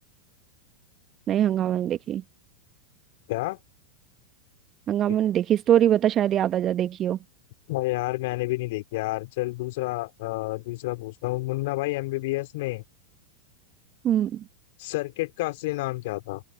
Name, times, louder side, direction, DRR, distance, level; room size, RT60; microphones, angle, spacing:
voice 1, 1.3-2.2 4.9-7.2 14.0-14.4, right 11 dB, 30° right, 1.6 m, -23 dB
voice 2, 7.7-12.8 14.8-16.4, left 20 dB, 50° left, 4.2 m, -29 dB
open air
figure-of-eight pair, 90°, 0 cm